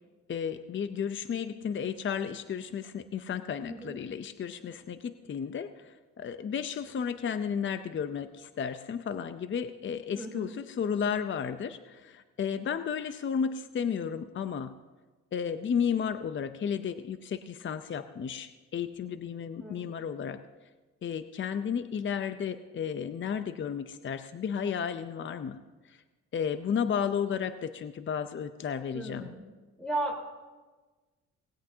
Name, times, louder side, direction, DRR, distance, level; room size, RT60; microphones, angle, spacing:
voice 1, 0.3-14.8 15.3-20.4 21.0-25.6 25.9-26.0 26.3-29.3, left 7 dB, 40° left, 10 dB, 0.7 m, -33 dB
voice 2, 3.6-4.0 10.1-10.5 19.6-19.9 28.9-29.5 29.8-30.2, right 2 dB, 5° left, 0 dB, 4.0 m, -35 dB
19.0 x 17.0 x 2.8 m, 1.3 s
cardioid pair, 90°, 30 cm